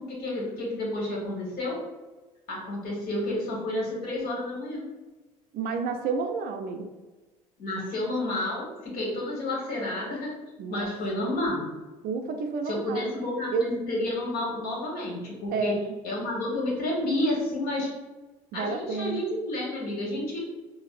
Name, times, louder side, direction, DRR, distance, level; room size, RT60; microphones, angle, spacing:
voice 1, 0.0-1.8 2.5-4.8 7.6-10.3 10.7-11.7 12.6-15.7 16.0-17.9 18.5-20.4, left 1 dB, 55° left, -3 dB, 1.4 m, -30 dB
voice 2, 5.5-6.9 10.6-10.9 12.0-13.1 13.5-13.7 15.5-15.8 18.5-19.2, right 4 dB, 55° right, 6 dB, 0.5 m, -30 dB
4.1 x 2.1 x 2.5 m, 1.2 s
hypercardioid pair, 65°, 18 cm